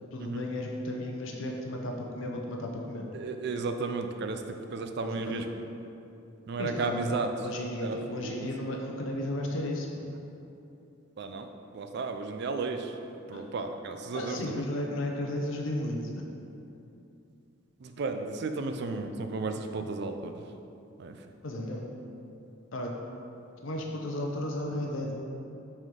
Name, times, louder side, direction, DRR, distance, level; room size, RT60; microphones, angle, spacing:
voice 1, 0.1-3.1 5.0-5.4 6.6-7.1 7.4-10.0 13.3-13.4 14.1-16.2 21.4-21.8 22.7-22.9 23.6-25.1, left 1 dB, 75° left, 1 dB, 0.6 m, -34 dB
voice 2, 3.1-5.5 6.5-7.3 7.8-8.5 11.2-11.5 11.7-12.9 13.3-14.6 17.8-20.3 21.0-21.2, right 3 dB, 55° right, 6 dB, 0.4 m, -34 dB
6.1 x 4.4 x 3.7 m, 2.7 s
head